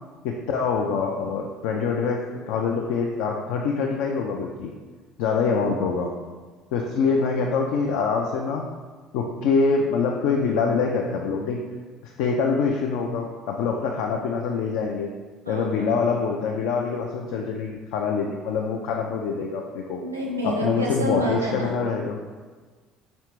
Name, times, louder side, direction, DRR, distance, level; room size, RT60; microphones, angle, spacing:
voice 1, 0.2-4.7 5.2-6.1 6.7-8.6 9.1-11.6 12.0-15.1 15.5-20.0 20.4-22.2, left 5 dB, 60° left, 1 dB, 0.3 m, -25 dB
voice 2, 15.4-15.9 20.0-21.8, equal, 85° right, -2 dB, 0.6 m, -28 dB
5.1 x 3.2 x 3.0 m, 1.4 s
figure-of-eight pair, 55°, 0 cm